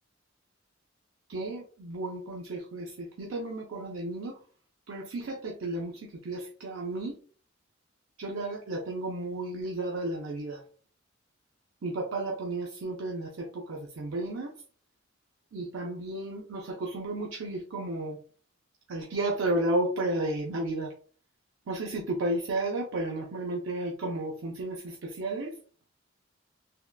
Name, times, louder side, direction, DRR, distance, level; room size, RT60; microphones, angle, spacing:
voice 1, 1.3-4.3 4.9-7.2 8.2-10.6 11.8-14.5 15.5-18.2 18.9-20.9 21.7-25.5, right 2 dB, 75° right, 1 dB, 0.5 m, -33 dB
3.5 x 2.2 x 2.2 m, 0.42 s
head